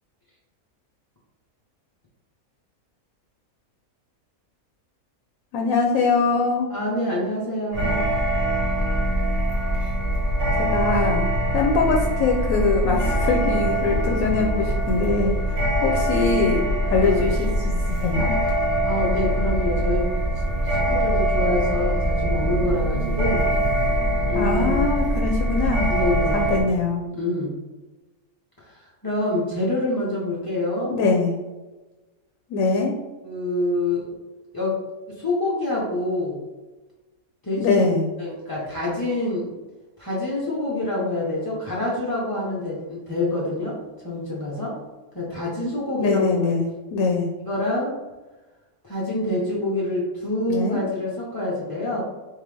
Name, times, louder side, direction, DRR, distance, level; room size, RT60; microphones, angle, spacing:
voice 1, 5.5-6.7 10.5-11.3 11.5-15.3 15.8-16.6 16.9-18.3 24.3-25.9 26.3-27.0 30.9-31.3 32.5-32.9 37.6-38.1 46.0-47.3 50.5-50.8, left 4 dB, 75° left, 1 dB, 1.0 m, -22 dB
voice 2, 6.7-8.0 17.0-17.4 18.8-20.1 20.6-23.4 24.2-24.9 25.9-26.4 27.1-27.6 28.6-31.0 33.2-34.1 34.5-34.8 35.2-36.4 37.4-37.9 38.2-39.5 40.0-43.8 44.0-44.8 45.1-46.4 47.4-47.9 48.8-52.0, left 1 dB, 30° left, -6 dB, 0.4 m, -26 dB
sound 1, 7.7-26.6, right 1 dB, 55° right, 1.3 m, -23 dB
3.6 x 3.6 x 3.3 m, 1.1 s
omnidirectional pair, 1.5 m